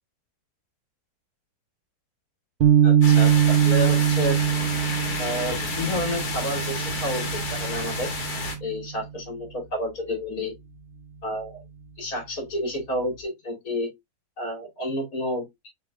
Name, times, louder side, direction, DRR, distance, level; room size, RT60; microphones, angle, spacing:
sound 1, 2.6-9.0, right 9 dB, 55° right, 0.6 m, -22 dB
voice 1, 2.8-4.4 5.2-8.1 8.6-10.5 11.2-11.6 12.0-13.9 14.4-15.7, left 1 dB, 70° left, 3.1 m, -30 dB
sound 2, 3.0-8.5, left 3 dB, 85° left, 1.9 m, -31 dB
6.6 x 3.5 x 2.2 m
omnidirectional pair, 1.6 m